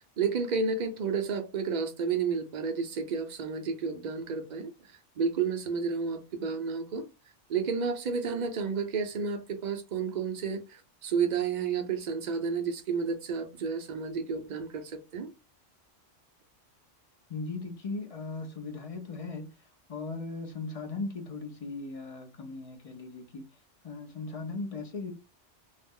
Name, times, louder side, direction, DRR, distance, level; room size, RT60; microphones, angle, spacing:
voice 1, 0.0-4.7 5.2-7.0 7.5-15.3, right 5 dB, 50° right, 0.5 m, -31 dB
voice 2, 17.3-23.5 23.8-25.1, left 3 dB, 50° left, 0.4 m, -38 dB
2.4 x 2.0 x 3.5 m
omnidirectional pair, 1.2 m